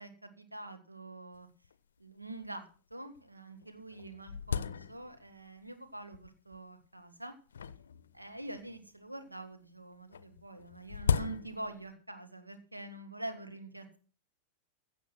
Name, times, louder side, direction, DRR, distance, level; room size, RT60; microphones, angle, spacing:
voice 1, 0.0-1.5 2.0-7.3 8.1-14.0, right 2 dB, 85° right, 8 dB, 1.9 m, -45 dB
sound 1, 1.3-1.4 1.6-1.7 2.4-2.5 3.2-3.3 3.6-5.4 6.1-6.6 7.5-8.8 10.1-11.9, left 7 dB, 65° left, 0.6 m, -36 dB
15.5 x 7.1 x 6.1 m, 0.38 s
figure-of-eight pair, 90°, 0 cm